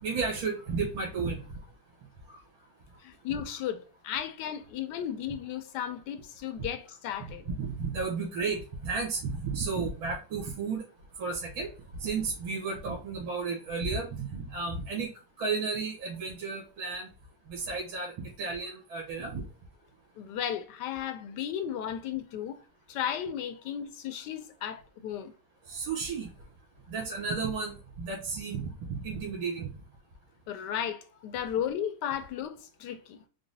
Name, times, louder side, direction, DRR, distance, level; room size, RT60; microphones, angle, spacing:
voice 1, 0.0-1.6 2.3-2.4 3.3-3.4 7.2-7.3 7.6-10.8 11.2-15.1 15.4-17.1 17.5-19.4 25.7-26.3 26.9-29.7, right 4 dB, 80° right, 2.0 m, -33 dB
voice 2, 3.0-7.4 20.2-22.6 22.9-25.3 30.5-33.2, left 9 dB, 70° left, 1.1 m, -35 dB
4.8 x 2.0 x 3.9 m
omnidirectional pair, 2.2 m